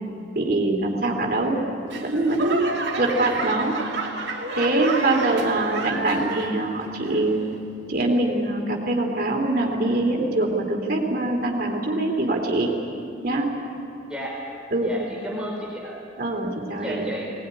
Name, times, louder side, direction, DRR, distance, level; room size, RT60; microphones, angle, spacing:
voice 1, 0.4-1.6 2.0-2.7 3.0-3.7 4.5-7.5 7.9-12.7 13.2-13.5 14.7-14.9 16.2-17.1, right 2 dB, 50° right, 2 dB, 3.4 m, -23 dB
Laughter / Clapping / Crowd, 1.9-6.7 7.0-7.5 8.1-8.2, right 3 dB, 70° right, 2.8 m, -30 dB
voice 2, 14.1-14.4 14.8-16.0 16.7-17.2, right 1 dB, 5° right, -3 dB, 4.6 m, -33 dB
21.5 x 19.0 x 9.9 m, 2.5 s
head